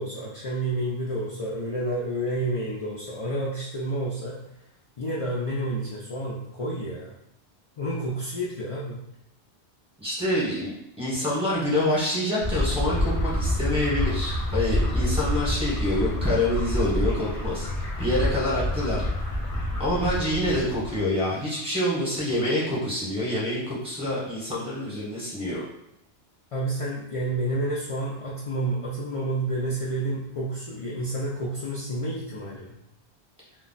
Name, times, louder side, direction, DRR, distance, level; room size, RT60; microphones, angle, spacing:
voice 1, 0.0-4.4 5.0-7.1 7.8-9.0 26.5-32.7, right 1 dB, 55° left, -6 dB, 0.3 m, -30 dB
voice 2, 10.0-17.7 18.0-19.0 19.8-25.6, left 1 dB, 5° right, -9 dB, 1.0 m, -26 dB
sound 1, 12.4-21.0, left 1 dB, 40° left, 0.7 m, -27 dB
2.3 x 2.1 x 3.8 m, 0.82 s
omnidirectional pair, 1.1 m